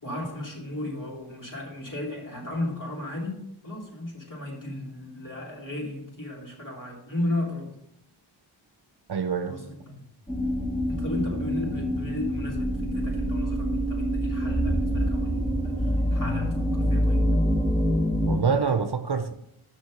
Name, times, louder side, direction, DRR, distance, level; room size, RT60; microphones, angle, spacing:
voice 1, 0.0-7.8 9.4-10.0 10.9-17.2, left 1 dB, 40° left, -2 dB, 3.2 m, -35 dB
voice 2, 9.1-9.6 18.3-19.3, right 6 dB, 50° right, 9 dB, 0.8 m, -25 dB
sound 1, 10.3-18.4, equal, 15° left, 0.9 m, -26 dB
6.4 x 6.3 x 6.3 m, 0.79 s
cardioid pair, 45°, 50 cm